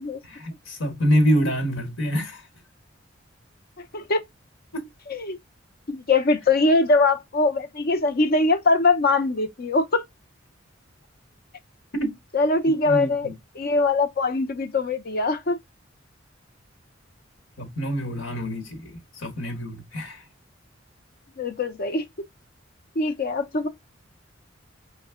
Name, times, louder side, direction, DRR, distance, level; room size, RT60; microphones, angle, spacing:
voice 1, 0.2-2.5 4.7-4.9 11.9-12.1 12.9-13.3 17.6-20.2, equal, 80° left, 1.3 m, -26 dB
voice 2, 5.9-10.0 12.3-13.3 13.6-15.6 21.4-22.1 23.0-23.7, left 3 dB, 50° left, 0.6 m, -22 dB
5.2 x 2.2 x 3.5 m
head